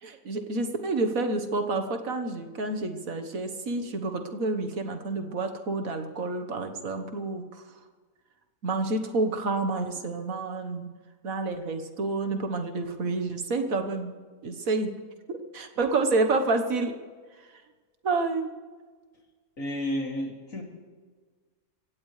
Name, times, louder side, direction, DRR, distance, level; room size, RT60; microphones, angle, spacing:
voice 1, 0.0-7.6 8.6-10.9 11.2-14.1 14.4-14.9 15.3-16.9 17.4-17.5 18.0-18.5, right 3 dB, 65° right, 6 dB, 1.7 m, -29 dB
voice 2, 19.6-20.6, left 1 dB, 60° left, 0 dB, 3.1 m, -31 dB
24.5 x 16.5 x 3.3 m, 1.5 s
omnidirectional pair, 1.6 m